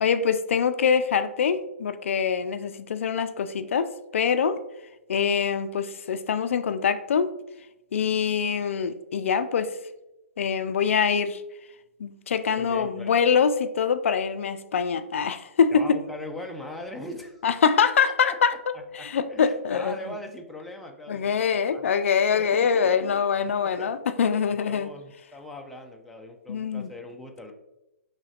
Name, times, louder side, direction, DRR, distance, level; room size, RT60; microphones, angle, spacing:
voice 1, 0.0-4.6 5.1-7.3 7.9-9.7 10.4-11.4 12.0-16.0 17.4-19.9 21.1-24.9 26.5-26.9, left 6 dB, 65° left, 11 dB, 0.3 m, -24 dB
voice 2, 12.6-13.5 15.7-17.4 18.2-21.8 22.3-23.2 23.6-23.9 24.5-27.5, left 1 dB, ahead, 1 dB, 0.4 m, -41 dB
6.0 x 3.2 x 2.8 m, 0.93 s
hypercardioid pair, 140°, 7 cm